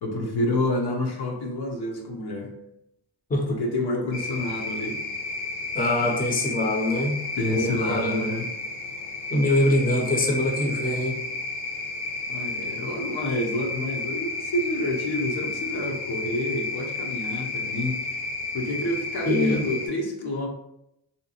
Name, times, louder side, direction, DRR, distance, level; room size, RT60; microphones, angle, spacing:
voice 1, 0.0-2.5 3.5-5.0 7.4-8.5 12.3-18.1 18.5-20.5, left 1 dB, 65° left, 1 dB, 0.8 m, -28 dB
sound 1, 4.1-19.9, left 3 dB, 85° left, 1.1 m, -32 dB
voice 2, 5.7-7.2 7.5-8.2 9.3-11.2 19.2-19.6, left 1 dB, 20° left, 1 dB, 0.6 m, -23 dB
3.2 x 2.8 x 2.8 m, 0.81 s
cardioid pair, 90°, 42 cm